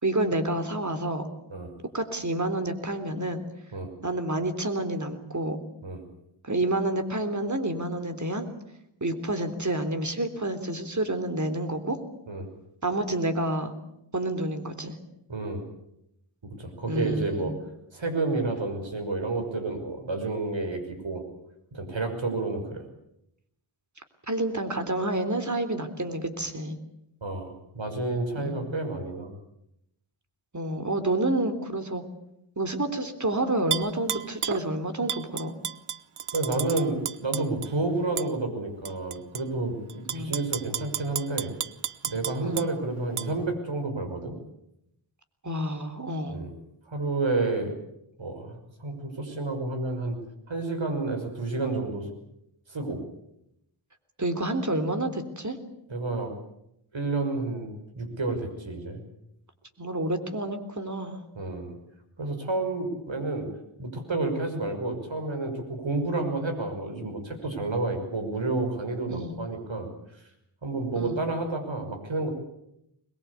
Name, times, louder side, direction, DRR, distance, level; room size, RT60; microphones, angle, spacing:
voice 1, 0.0-1.3 1.9-3.4 4.0-5.6 6.4-8.5 9.0-12.0 12.8-13.7 14.1-15.0 16.9-17.5 24.3-26.8 28.4-28.7 30.5-32.0 32.6-35.5 40.1-40.3 42.4-42.7 45.4-46.4 54.2-55.6 59.8-61.2 69.1-69.3 71.0-71.2, right 1 dB, 35° right, 8 dB, 3.6 m, -29 dB
voice 2, 15.3-15.6 16.4-17.5 17.9-21.2 21.7-22.8 27.2-29.3 36.3-41.5 42.0-44.4 46.3-46.5 46.9-47.7 48.2-50.2 50.5-52.1 52.7-53.0 55.9-56.3 56.9-59.0 61.3-61.8 62.2-63.5 63.8-69.9 70.6-72.3, right 2 dB, 65° right, 6 dB, 6.0 m, -30 dB
Tap / Glass, 33.7-34.6 35.1-37.7 38.2-38.3 38.8-39.4 39.9-42.7 43.2-43.3, right 9 dB, 85° right, 0.9 m, -32 dB
23.0 x 21.5 x 8.4 m, 0.80 s
cardioid pair, 50°, 49 cm